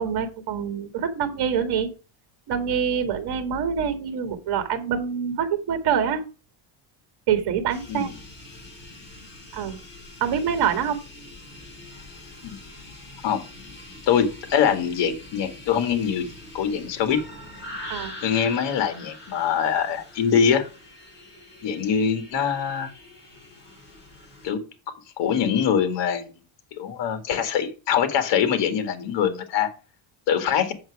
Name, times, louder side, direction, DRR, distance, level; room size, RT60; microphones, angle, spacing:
voice 1, 0.0-1.9 2.5-6.2 7.3-8.1 9.5-9.8 10.2-11.0 17.9-18.1, right 7 dB, 55° right, 9 dB, 1.9 m, -25 dB
sound 1, 7.7-24.5, left 2 dB, 20° left, 6.2 m, -44 dB
voice 2, 14.1-16.3 16.5-17.2 18.2-20.7 21.6-22.9 24.4-24.6 25.2-26.3 26.8-29.7 30.3-30.7, left 7 dB, 60° left, 9 dB, 2.2 m, -23 dB
7.8 x 7.1 x 4.8 m, 0.33 s
cardioid pair, 145°, 48 cm